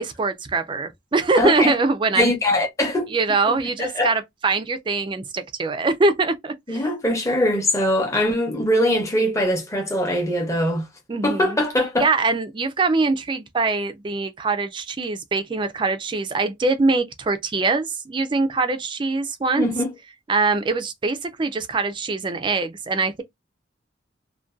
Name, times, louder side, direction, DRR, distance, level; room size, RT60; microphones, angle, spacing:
voice 1, 0.0-2.3 3.1-6.8 11.1-11.6 12.0-19.7 20.3-23.2, right 3 dB, 25° right, 0.3 m, -23 dB
voice 2, 1.4-1.8 2.1-3.2 3.8-4.1 6.7-10.9 11.2-12.1 19.6-19.9, left 1 dB, 15° left, 0.7 m, -22 dB
2.5 x 2.2 x 2.2 m
head